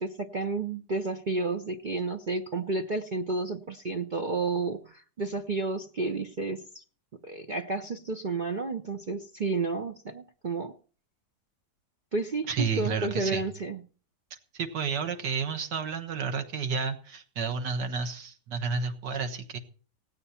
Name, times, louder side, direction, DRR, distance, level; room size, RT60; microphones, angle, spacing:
voice 1, 0.0-6.8 7.2-10.8 12.1-13.8, right 3 dB, 50° right, 5 dB, 0.5 m, -31 dB
voice 2, 12.5-13.5 14.5-19.6, right 5 dB, 85° right, 6 dB, 2.0 m, -31 dB
17.0 x 9.1 x 5.7 m, 0.41 s
omnidirectional pair, 1.8 m